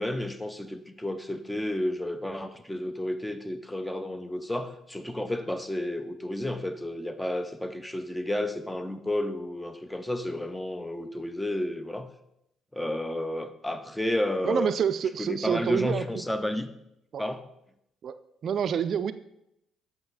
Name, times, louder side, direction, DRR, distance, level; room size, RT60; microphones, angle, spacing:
voice 1, 0.0-12.1 12.7-14.7 15.2-16.7 17.2-17.4, left 1 dB, 10° left, 9 dB, 0.7 m, -31 dB
voice 2, 14.4-16.2 17.1-17.2 18.0-18.2 18.4-19.1, right 7 dB, 60° right, 12 dB, 0.3 m, -28 dB
7.8 x 4.1 x 4.0 m, 0.82 s
hypercardioid pair, 55°, 0 cm